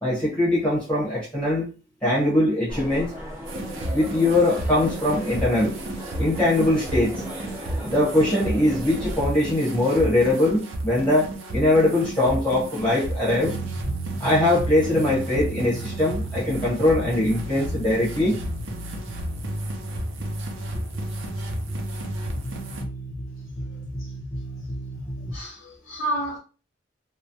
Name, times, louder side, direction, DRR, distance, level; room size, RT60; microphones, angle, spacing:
voice 1, 0.0-1.7 2.0-3.1 3.9-5.7 6.2-7.1 7.8-13.5 14.2-18.4, left 1 dB, 5° left, 1.1 m, -21 dB
sound 1, 2.7-9.2, equal, 35° right, 0.9 m, -37 dB
sound 2, 3.4-22.8, right 1 dB, 75° right, 0.6 m, -33 dB
sound 3, 13.4-25.4, right 1 dB, 25° left, 0.7 m, -33 dB
voice 2, 25.3-26.4, right 1 dB, 85° left, 0.6 m, -30 dB
3.1 x 2.1 x 2.6 m
head